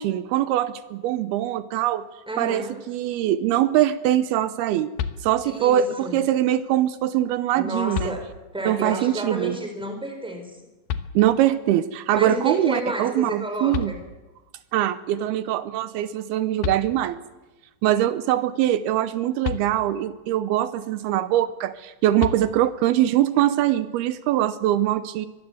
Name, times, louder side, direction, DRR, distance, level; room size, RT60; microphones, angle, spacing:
voice 1, 0.0-2.1 2.4-4.9 5.2-8.2 8.7-9.6 11.2-13.9 14.7-17.2 17.8-25.3, right 12 dB, 80° right, 13 dB, 2.8 m, -22 dB
voice 2, 2.3-2.8 5.5-6.2 7.5-10.6 12.1-14.0, right 1 dB, ahead, 5 dB, 3.8 m, -31 dB
sound 1, 5.0-5.7 7.2-7.3 7.9-8.7 10.9-11.6 13.4-13.5 13.7-14.6 16.3-16.4 16.6-17.4 19.4-20.2 22.2-23.0, left 7 dB, 75° left, 2.9 m, -33 dB
24.0 x 20.5 x 8.0 m, 1.1 s
omnidirectional pair, 4.4 m